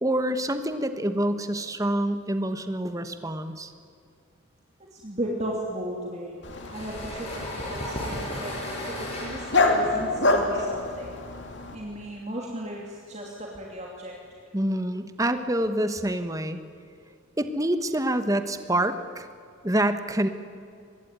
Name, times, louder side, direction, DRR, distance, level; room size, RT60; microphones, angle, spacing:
voice 1, 0.0-3.7 14.5-16.6 17.4-19.3 19.6-20.3, right 1 dB, 15° right, 9 dB, 1.2 m, -26 dB
voice 2, 4.9-8.5 8.9-9.4 9.7-11.2 11.7-14.1, right 1 dB, 35° right, -2 dB, 2.8 m, -35 dB
Dog, 6.4-11.8, left 2 dB, 60° left, 2.9 m, -27 dB
sound 1, 6.5-12.0, left 1 dB, 30° left, 6.6 m, -36 dB
24.0 x 20.5 x 9.5 m, 2.4 s
head